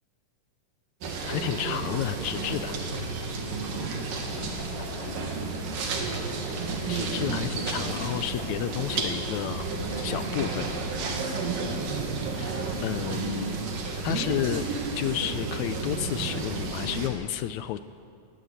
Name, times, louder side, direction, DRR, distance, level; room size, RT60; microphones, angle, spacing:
sound 1, 1.0-17.1, right 3 dB, 90° right, 3.7 m, -31 dB
Knock, 1.2-3.0 4.2-5.4 6.1-9.0 9.5-11.3, left 2 dB, 50° left, 6.3 m, -42 dB
voice 1, 1.3-2.7 6.9-9.7 10.0-10.7 12.3-13.6 14.0-14.7 15.0-17.8, left 12 dB, 80° left, 12 dB, 1.7 m, -31 dB
18.5 x 17.5 x 8.1 m, 2.4 s
omnidirectional pair, 3.8 m